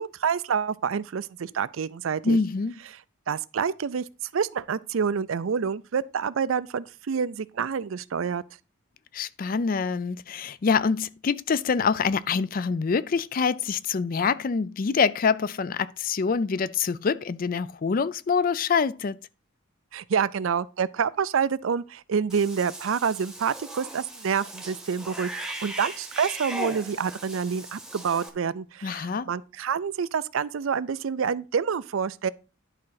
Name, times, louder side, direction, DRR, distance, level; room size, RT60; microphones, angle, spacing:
voice 1, 0.0-2.4 3.3-4.0 4.3-8.4 19.9-32.3, right 6 dB, 75° right, 0.4 m, -27 dB
voice 2, 2.2-2.8 9.1-19.2 28.8-29.3, left 5 dB, 45° left, 0.4 m, -25 dB
Cat / Bathtub (filling or washing), 22.3-28.3, right 1 dB, 5° right, 0.9 m, -38 dB
11.0 x 3.7 x 5.8 m
head